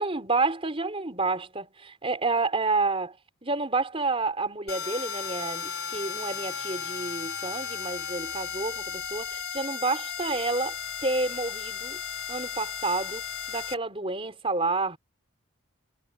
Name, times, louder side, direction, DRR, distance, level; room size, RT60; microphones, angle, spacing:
voice 1, 0.0-3.2 3.4-10.7 11.0-12.0 12.3-13.2 13.5-15.0, right 3 dB, 25° right, 4.0 m, -29 dB
sound 1, 4.7-13.7, left 7 dB, 85° left, 3.5 m, -35 dB
head